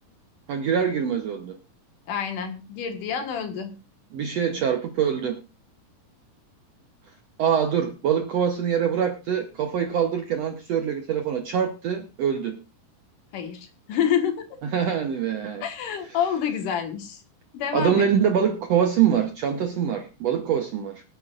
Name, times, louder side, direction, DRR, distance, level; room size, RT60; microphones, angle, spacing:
voice 1, 0.5-1.6 4.1-5.4 7.4-12.6 14.7-15.6 17.7-21.0, right 8 dB, 70° right, 6 dB, 1.5 m, -24 dB
voice 2, 2.1-3.7 13.3-14.6 15.6-17.2 17.5-18.1, left 8 dB, 70° left, 6 dB, 3.0 m, -28 dB
25.5 x 8.7 x 2.5 m, 0.27 s
omnidirectional pair, 4.1 m